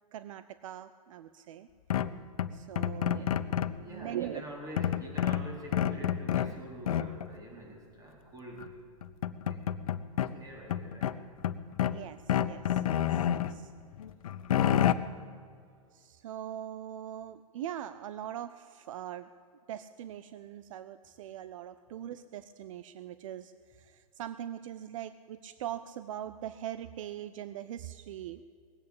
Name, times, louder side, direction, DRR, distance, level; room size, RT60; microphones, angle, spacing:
voice 1, 0.1-1.7 2.5-3.3 3.8-4.4 11.9-13.7 15.9-19.3 19.7-28.4, right 11 dB, 65° right, 13 dB, 0.6 m, -41 dB
sound 1, 1.9-3.8 4.8-6.5 6.9-7.3 8.6-8.7 9.0-10.3 10.7-12.0 12.3-13.5 14.0-14.9, left 10 dB, 75° left, 0.7 m, -29 dB
voice 2, 3.0-8.9 9.5-9.7 10.2-11.3, right 1 dB, 20° right, -1 dB, 4.3 m, -46 dB
19.5 x 8.5 x 8.5 m, 2.3 s
hypercardioid pair, 115°, 18 cm